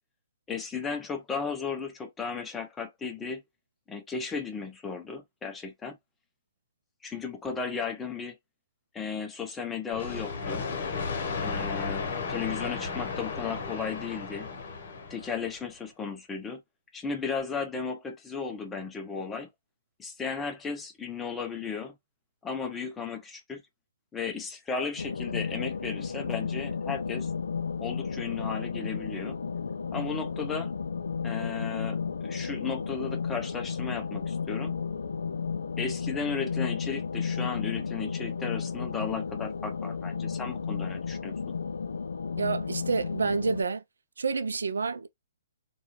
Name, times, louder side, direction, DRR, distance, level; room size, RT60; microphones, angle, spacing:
voice 1, 0.5-3.4 3.9-6.0 7.0-8.4 8.9-10.7 11.4-14.5 15.1-16.6 16.9-19.5 20.0-21.9 22.4-23.6 24.1-27.3 27.8-29.4 29.9-30.7 31.2-34.7 35.8-41.3, left 5 dB, 10° left, 0.4 m, -35 dB
sound 1, 9.9-15.6, left 4 dB, 55° left, 0.8 m, -34 dB
sound 2, 25.0-43.6, left 5 dB, 80° left, 0.3 m, -33 dB
voice 2, 42.4-43.8 44.2-45.1, right 4 dB, 85° right, 0.4 m, -28 dB
2.3 x 2.2 x 2.9 m
hypercardioid pair, 140°, 0 cm